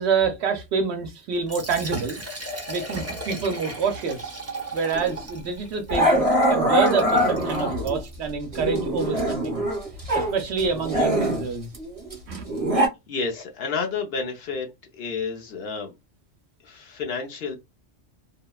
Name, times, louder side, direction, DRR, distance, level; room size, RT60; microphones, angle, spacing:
voice 1, 0.0-2.2 2.7-4.4 4.7-9.6 10.1-11.7 12.3-12.5, right 5 dB, 70° right, 0.8 m, -27 dB
Liquid, 1.3-8.2, right 2 dB, 20° right, 0.5 m, -37 dB
Growling, 4.9-5.1 5.9-8.0 8.5-10.3 10.6-12.9, equal, 35° right, 0.9 m, -23 dB
voice 2, 12.8-14.7 14.9-15.9 16.6-17.6, left 4 dB, 60° left, 0.9 m, -30 dB
2.8 x 2.1 x 2.2 m
omnidirectional pair, 1.2 m